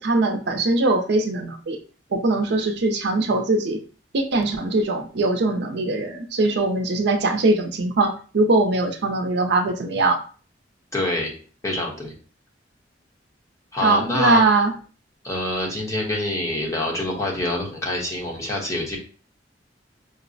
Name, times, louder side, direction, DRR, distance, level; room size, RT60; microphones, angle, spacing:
voice 1, 0.0-1.8 2.1-3.8 4.1-10.2 13.8-14.7, right 2 dB, 65° right, 5 dB, 0.5 m, -21 dB
voice 2, 10.9-11.4 11.6-12.1 13.7-14.4 15.2-19.0, left 1 dB, 15° left, -2 dB, 0.8 m, -26 dB
5.1 x 2.0 x 2.5 m, 0.39 s
head